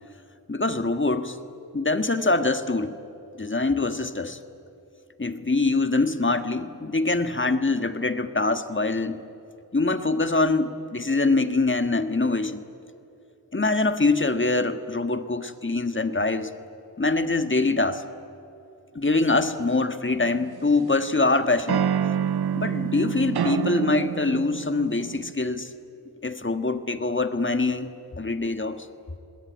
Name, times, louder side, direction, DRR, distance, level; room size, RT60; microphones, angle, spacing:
voice 1, 0.5-1.4 1.7-2.9 3.4-4.4 5.2-9.2 9.7-12.6 13.5-16.5 17.0-18.0 18.9-21.8 22.5-25.7 26.2-27.9 28.2-28.9, left 3 dB, 30° left, 9 dB, 1.7 m, -24 dB
sound 1, 20.2-21.0 21.7-25.3, right 8 dB, 75° right, 0.7 m, -27 dB
27.0 x 20.5 x 9.4 m, 2.8 s
wide cardioid pair, 55°, 39 cm